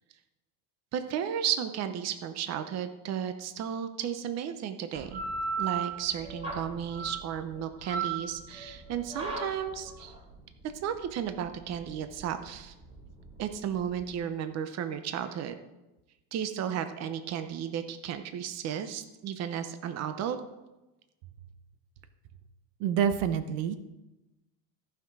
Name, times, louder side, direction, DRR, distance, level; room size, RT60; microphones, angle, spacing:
voice 1, 0.9-5.2 5.6-10.1 10.8-12.7 13.4-15.6 16.3-20.4, right 9 dB, 40° right, 9 dB, 0.9 m, -34 dB
sound 1, 4.9-14.1, right 5 dB, 15° right, 2.6 m, -37 dB
voice 2, 22.8-23.8, right 8 dB, 75° right, 11 dB, 1.0 m, -27 dB
14.0 x 6.0 x 4.8 m, 1.0 s
cardioid pair, 135°, 39 cm